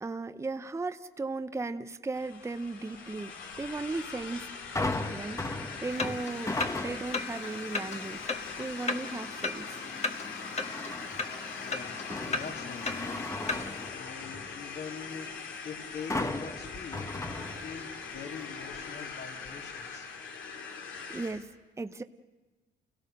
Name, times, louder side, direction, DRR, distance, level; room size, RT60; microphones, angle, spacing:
voice 1, 0.0-4.5 5.1-5.4 5.8-9.8 21.1-22.0, right 3 dB, 15° right, 9 dB, 0.7 m, -36 dB
sound 1, 2.1-21.5, left 5 dB, 80° left, 2.5 m, -42 dB
sound 2, 4.8-7.3 7.8-8.1 10.6-11.3 11.7-14.6 16.1-18.0 18.4-18.5, left 2 dB, 15° left, 1.1 m, -36 dB
sound 3, 5.8-13.9, left 3 dB, 35° left, 1.4 m, -37 dB
voice 2, 11.6-13.2 13.9-15.3 15.6-17.0 17.3-20.1, left 5 dB, 60° left, 2 dB, 2.8 m, -44 dB
29.0 x 17.0 x 6.6 m, 1.2 s
cardioid pair, 90°, 20 cm